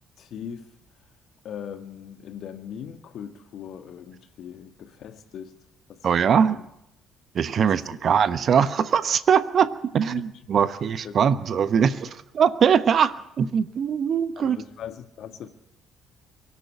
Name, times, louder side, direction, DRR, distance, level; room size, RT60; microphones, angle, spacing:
voice 1, 0.2-0.7 1.4-5.6 5.9-6.7 7.6-8.0 10.1-10.2 10.5-10.7 11.0-11.2 14.4-15.5, left 8 dB, 55° left, 1.7 m, -40 dB
voice 2, 6.0-6.6 7.3-14.6, right 7 dB, 45° right, 1.1 m, -22 dB
23.5 x 12.0 x 9.9 m
figure-of-eight pair, 45°, 0 cm